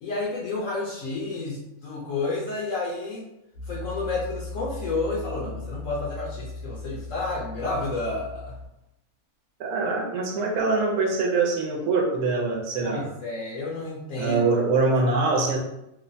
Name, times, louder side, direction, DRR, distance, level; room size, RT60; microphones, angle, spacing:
voice 1, 0.0-3.3 3.6-8.5 12.8-14.4, left 3 dB, 70° left, -5 dB, 0.9 m, -30 dB
Piano, 3.5-8.7, left 3 dB, 85° left, 1.1 m, -38 dB
voice 2, 9.6-13.1 14.2-15.6, right 3 dB, 75° right, -1 dB, 1.1 m, -24 dB
3.1 x 2.1 x 2.5 m, 0.87 s
omnidirectional pair, 1.6 m